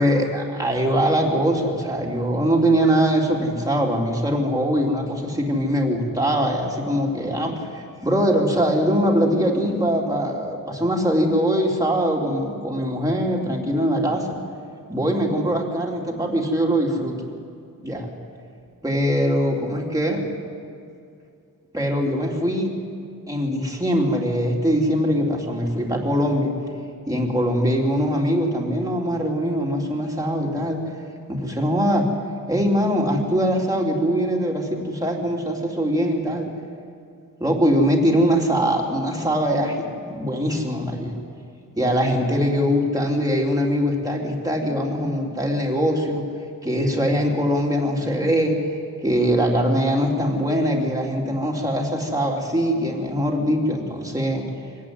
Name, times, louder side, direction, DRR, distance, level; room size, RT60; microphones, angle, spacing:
voice 1, 0.0-14.4 14.9-17.2 17.8-18.1 18.8-20.2 21.7-22.7 23.3-26.5 27.1-30.8 31.3-32.1 32.5-36.5 37.4-41.1 41.8-46.3 46.6-48.8 49.0-54.5, equal, 10° right, -2 dB, 3.5 m, -22 dB
24.5 x 15.0 x 9.9 m, 2.4 s
wide cardioid pair, 140°, 34 cm